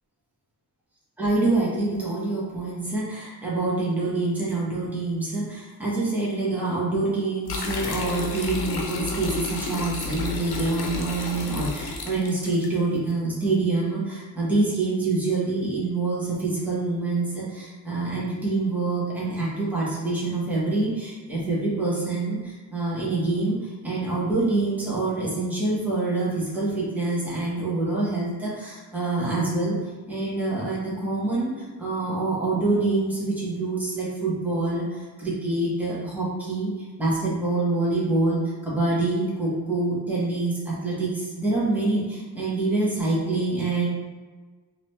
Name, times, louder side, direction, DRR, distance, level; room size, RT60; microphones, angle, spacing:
voice 1, 1.2-23.6 23.8-29.8 30.1-36.7 37.0-43.9, right 2 dB, 5° right, -7 dB, 1.3 m, -26 dB
sound 1, 7.5-12.7, left 4 dB, 80° left, 0.8 m, -31 dB
4.0 x 2.8 x 3.2 m, 1.4 s
cardioid pair, 100°, 38 cm